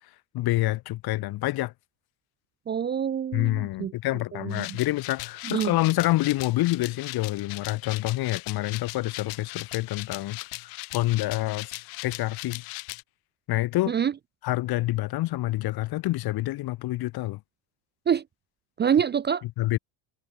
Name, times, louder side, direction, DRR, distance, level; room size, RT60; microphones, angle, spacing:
voice 1, 0.3-1.7 3.3-10.4 10.9-12.6 13.5-13.9 14.4-17.4 19.6-19.8, left 17 dB, 50° left, 0.8 m, -27 dB
voice 2, 2.7-3.9 4.3-4.8 5.4-5.8 13.9-14.1 18.1-18.2 18.8-19.4, right 8 dB, 20° right, 0.5 m, -26 dB
sound 1, 4.5-13.0, left 33 dB, 75° left, 1.8 m, -39 dB
supercardioid pair, 110°, 49 cm